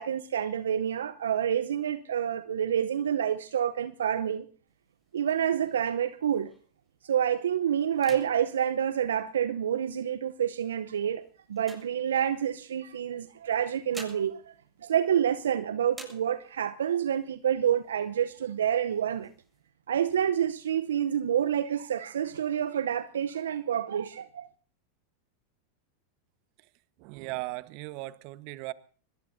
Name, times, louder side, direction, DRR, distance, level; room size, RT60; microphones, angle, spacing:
voice 1, 0.0-4.5 5.1-6.5 7.0-14.5 14.8-19.3 19.9-24.5, right 9 dB, 80° right, 0.7 m, -28 dB
sound 1, 4.7-6.9 7.3-7.6 7.9-9.8 10.5-12.6 13.5-15.5 15.9-16.8 17.2-17.3 17.6-18.2 18.7-19.6, right 1 dB, 5° right, 7.7 m, -51 dB
voice 2, 27.0-28.7, right 20 dB, 55° right, 1.2 m, -37 dB
22.5 x 21.5 x 2.7 m
hypercardioid pair, 95°, 0 cm